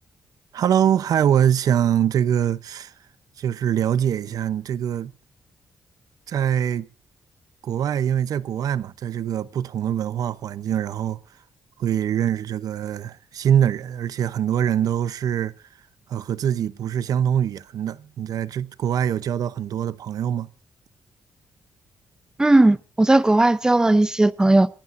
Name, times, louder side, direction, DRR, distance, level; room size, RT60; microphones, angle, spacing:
voice 1, 0.5-2.9 3.4-5.1 6.3-6.9 7.6-11.2 11.8-15.5 16.1-20.5, right 9 dB, 65° right, 0.8 m, -23 dB
voice 2, 22.4-24.7, right 2 dB, 10° right, 0.7 m, -17 dB
27.5 x 15.0 x 2.6 m
wide cardioid pair, 150°, 7 cm